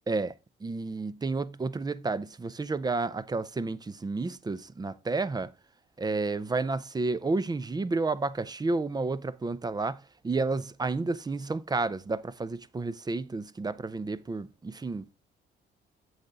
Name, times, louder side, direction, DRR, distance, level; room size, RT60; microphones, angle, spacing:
voice 1, 0.6-5.5 6.0-15.1, right 3 dB, 20° right, 0.5 m, -31 dB
7.8 x 6.7 x 3.6 m
cardioid pair, 90°, 20 cm